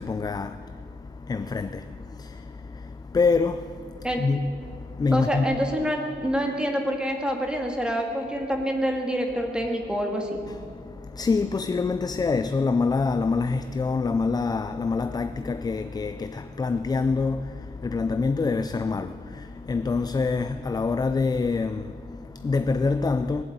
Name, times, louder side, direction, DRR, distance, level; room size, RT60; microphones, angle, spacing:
voice 1, 0.0-5.6 10.5-23.4, left 4 dB, 25° left, 0.3 m, -26 dB
voice 2, 5.1-10.4, equal, 5° right, 1.8 m, -27 dB
20.5 x 7.8 x 8.6 m
wide cardioid pair, 165°, 17 cm